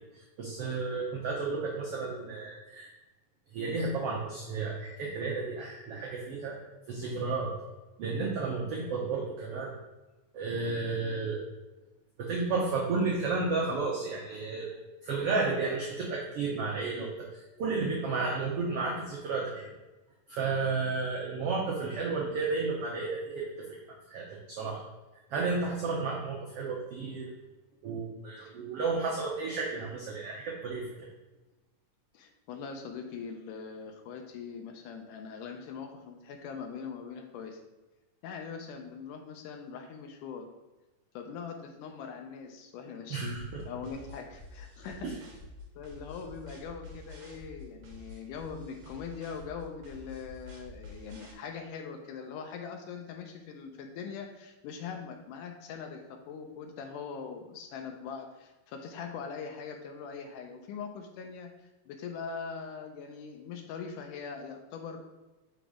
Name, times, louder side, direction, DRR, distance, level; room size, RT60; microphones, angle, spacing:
voice 1, 0.0-2.9 3.5-6.6 6.9-7.5 8.0-9.7 10.3-11.5 12.2-14.7 15.0-19.7 20.3-23.7 24.1-24.8 25.3-27.3 27.8-30.8 43.1-43.6 45.0-45.1, right 4 dB, 85° right, -2 dB, 1.3 m, -32 dB
voice 2, 32.1-37.6 38.2-40.5 41.1-45.1 45.8-65.0, left 6 dB, 80° left, 4 dB, 2.0 m, -42 dB
sound 1, 43.3-51.3, left 2 dB, 65° right, 1.7 m, -48 dB
6.0 x 4.0 x 4.8 m, 1.1 s
omnidirectional pair, 3.9 m